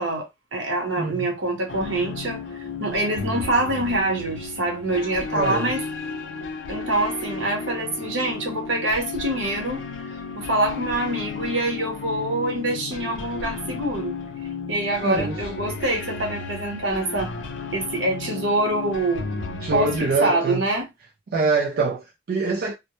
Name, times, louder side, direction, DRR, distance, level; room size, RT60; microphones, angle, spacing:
voice 1, 0.0-2.4 2.8-5.8 6.7-9.8 10.3-14.2 14.7-17.3 17.7-19.2 19.7-20.9, right 1 dB, 80° right, 0.9 m, -25 dB
voice 2, 1.0-1.3 5.3-5.7 15.0-15.5 19.4-20.7 21.3-22.7, right 4 dB, 55° right, 0.3 m, -25 dB
sound 1, 1.7-20.2, left 4 dB, 70° left, 0.5 m, -34 dB
2.1 x 2.0 x 2.9 m
head